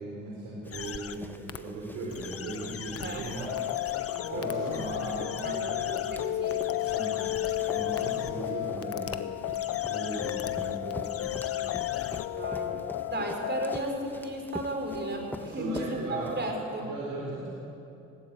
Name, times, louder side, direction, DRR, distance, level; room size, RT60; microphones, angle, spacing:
voice 1, 0.0-5.9 6.9-7.1 7.7-9.2 9.7-11.2 12.3-12.6 15.4-16.3 16.8-17.5, right 2 dB, 75° right, -3 dB, 4.4 m, -38 dB
Run, 0.6-16.8, left 1 dB, 5° left, 1.2 m, -46 dB
sound 1, 0.7-1.2 1.5-1.6 2.1-8.3 8.8-9.2 9.4-12.3, left 8 dB, 50° left, 1.0 m, -41 dB
voice 2, 3.0-3.5 4.2-4.9 5.4-6.6 12.2-12.7 13.1-16.8, right 1 dB, 35° right, 2 dB, 5.1 m, -35 dB
sound 2, 3.5-13.8, left 15 dB, 70° left, 0.5 m, -32 dB
19.0 x 17.5 x 8.6 m, 2.8 s
cardioid pair, 90°, 30 cm